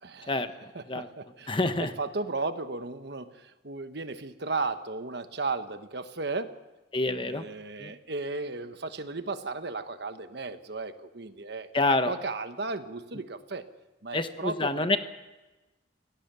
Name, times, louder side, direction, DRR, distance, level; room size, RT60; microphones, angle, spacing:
voice 1, 0.0-0.4 0.7-6.5 7.2-13.6 14.0-15.0, right 3 dB, 60° right, 10 dB, 1.2 m, -35 dB
voice 2, 1.5-1.9 6.9-7.4 7.8-7.9 11.7-12.1 14.1-15.0, left 2 dB, 25° left, 9 dB, 1.1 m, -27 dB
26.0 x 17.5 x 6.9 m, 1.1 s
head